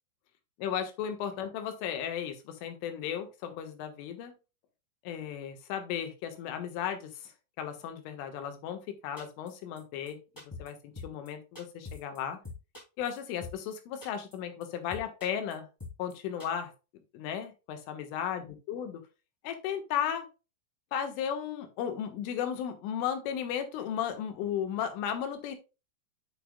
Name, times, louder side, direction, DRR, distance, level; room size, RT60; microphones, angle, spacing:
voice 1, 0.6-4.3 5.0-7.3 7.6-10.2 10.4-12.4 13.0-15.7 16.0-16.7 17.1-19.0 19.4-20.3 20.9-25.6, left 9 dB, 75° left, 7 dB, 3.7 m, -35 dB
sound 1, 9.2-9.5 9.8-9.9 10.1-10.2 10.4-10.7 11.0-11.3 11.5-12.2 12.4-13.7 14.0-14.3 14.6-14.7 14.9-15.5 15.8-16.1 16.4-16.5, left 3 dB, 20° left, 0.5 m, -43 dB
10.5 x 5.9 x 2.2 m, 0.29 s
omnidirectional pair, 6.0 m